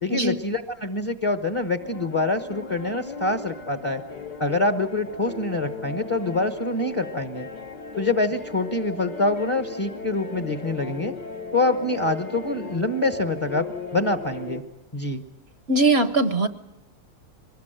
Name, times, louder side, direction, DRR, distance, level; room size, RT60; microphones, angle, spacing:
voice 1, 0.0-4.0 4.4-7.5 8.0-11.1 11.5-13.7 13.9-14.6 14.9-15.2, left 2 dB, 20° left, 8 dB, 0.9 m, -25 dB
sound 1, 1.8-14.6, left 4 dB, 75° left, 3.1 m, -37 dB
voice 2, 15.7-16.5, right 2 dB, 45° right, 11 dB, 1.0 m, -20 dB
23.0 x 20.5 x 9.0 m, 0.94 s
omnidirectional pair, 1.9 m